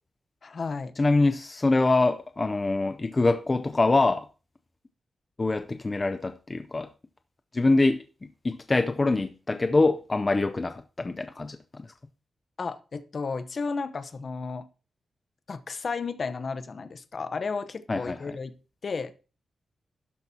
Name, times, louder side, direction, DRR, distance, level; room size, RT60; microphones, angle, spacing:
voice 1, 0.4-0.9 12.6-14.7 15.5-18.5 18.8-19.1, left 4 dB, 45° left, 0.8 m, -33 dB
voice 2, 1.0-4.3 5.4-6.9 7.5-8.0 8.4-11.9 17.9-18.4, left 3 dB, 25° left, 0.5 m, -24 dB
12.5 x 10.5 x 2.8 m
wide cardioid pair, 140°, 0 cm